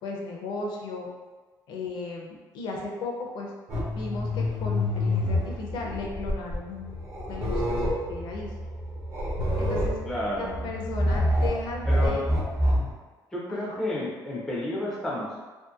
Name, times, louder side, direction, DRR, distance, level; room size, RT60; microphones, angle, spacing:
voice 1, 0.0-1.1 1.7-3.5 3.9-8.5 9.6-10.0 10.4-12.3 13.5-13.8, left 3 dB, 65° left, -1 dB, 0.5 m, -36 dB
sound 1, 3.7-12.9, left 1 dB, 35° right, 0.8 m, -27 dB
voice 2, 10.0-10.6 11.9-12.3 13.3-15.4, left 1 dB, 5° left, -5 dB, 0.4 m, -31 dB
2.6 x 2.5 x 2.4 m, 1.3 s
cardioid pair, 180°, 8 cm